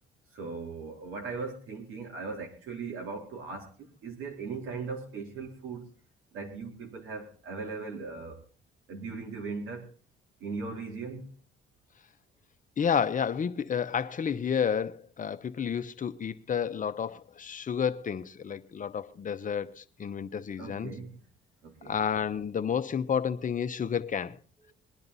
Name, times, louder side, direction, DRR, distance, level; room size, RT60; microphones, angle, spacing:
voice 1, 0.3-5.8 6.3-8.4 8.9-9.9 10.4-11.3 20.6-21.1 21.6-22.0 24.7-24.8, right 4 dB, 90° right, 3.7 m, -38 dB
voice 2, 12.8-20.9 21.8-24.4, left 7 dB, 40° left, 0.9 m, -30 dB
21.0 x 10.5 x 4.1 m
cardioid pair, 90°, 20 cm